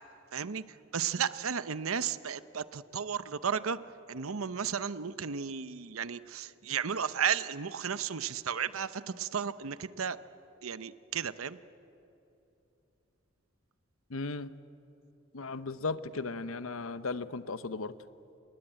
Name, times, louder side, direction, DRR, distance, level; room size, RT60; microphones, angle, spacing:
voice 1, 0.3-3.8 4.1-10.2 10.6-11.6, right 7 dB, 85° right, 14 dB, 0.8 m, -34 dB
voice 2, 14.1-14.5 15.3-17.9, left 3 dB, 80° left, 13 dB, 0.8 m, -36 dB
28.0 x 19.5 x 8.9 m, 2.9 s
head